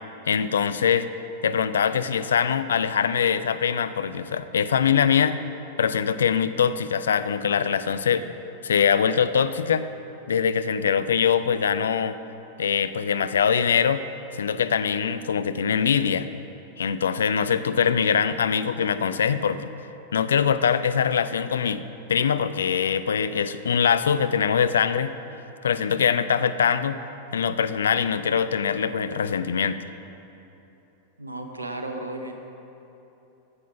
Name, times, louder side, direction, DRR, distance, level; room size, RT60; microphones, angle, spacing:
voice 1, 0.3-1.1 1.4-5.4 5.8-8.3 8.6-9.9 10.3-12.2 12.6-14.0 14.3-16.3 16.8-19.6 20.1-21.8 22.1-25.1 25.6-27.0 27.3-29.8, left 7 dB, 65° left, 13 dB, 0.4 m, -23 dB
voice 2, 31.2-32.3, right 2 dB, 80° right, 5 dB, 0.9 m, -34 dB
9.7 x 8.3 x 5.8 m, 3.0 s
figure-of-eight pair, 90°, 0 cm